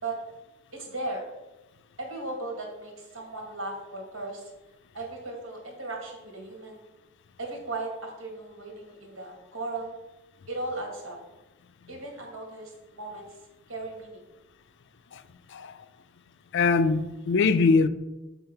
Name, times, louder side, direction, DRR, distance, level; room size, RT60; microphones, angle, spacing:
voice 1, 0.7-1.3 2.0-4.5 4.9-6.8 7.4-10.0 10.5-11.2 11.9-14.2, right 2 dB, 90° right, 2.2 m, -37 dB
voice 2, 16.5-17.9, left 4 dB, 60° left, 0.5 m, -22 dB
8.0 x 3.7 x 5.7 m
head